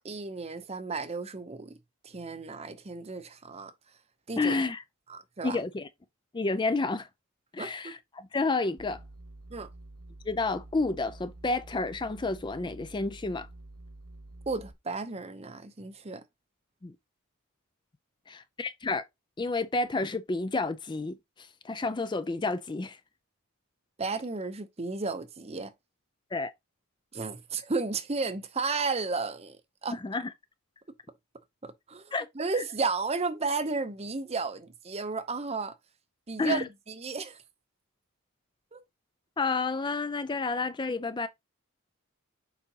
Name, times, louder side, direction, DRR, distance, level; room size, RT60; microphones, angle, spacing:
voice 1, 0.0-1.8 2.0-3.7 4.3-4.6 5.1-5.6 7.6-7.9 9.5-9.7 14.5-16.2 24.0-25.7 27.1-29.6 29.8-30.0 31.6-35.8 36.3-37.4 38.7-38.8, right 4 dB, 30° right, 0.7 m, -33 dB
voice 2, 4.4-4.8 5.4-5.9 6.3-7.1 7.5-9.0 10.3-13.5 16.8-16.9 18.3-19.0 19.4-23.0 26.3-26.5 29.9-30.3 32.1-32.3 32.6-32.7 36.4-36.7 39.4-41.3, left 3 dB, 20° left, 0.4 m, -30 dB
sound 1, 8.8-14.7, right 2 dB, 75° right, 1.6 m, -48 dB
7.0 x 5.0 x 2.8 m
head